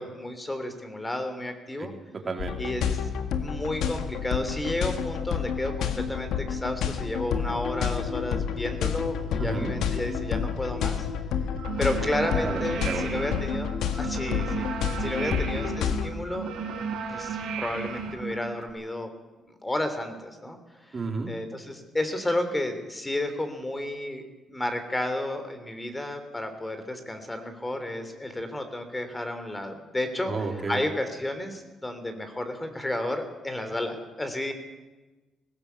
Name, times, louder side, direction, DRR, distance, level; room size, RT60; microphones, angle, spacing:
voice 1, 0.0-1.9 2.6-2.8 3.4-11.1 11.8-13.7 14.0-14.7 15.0-16.5 17.1-19.1 19.4-20.6 20.9-21.0 21.3-24.2 24.5-30.3 30.7-34.5, left 1 dB, 15° left, 8 dB, 3.3 m, -32 dB
voice 2, 2.2-2.6 9.4-9.8 12.4-13.1 15.3-15.5 20.9-21.3 30.3-30.8, right 4 dB, 35° right, 2 dB, 3.7 m, -32 dB
sound 1, 2.4-16.1, left 7 dB, 80° left, 1.7 m, -29 dB
sound 2, 11.6-18.7, right 5 dB, 80° right, 4.9 m, -34 dB
19.0 x 17.5 x 8.2 m, 1.2 s
cardioid pair, 90°, 0 cm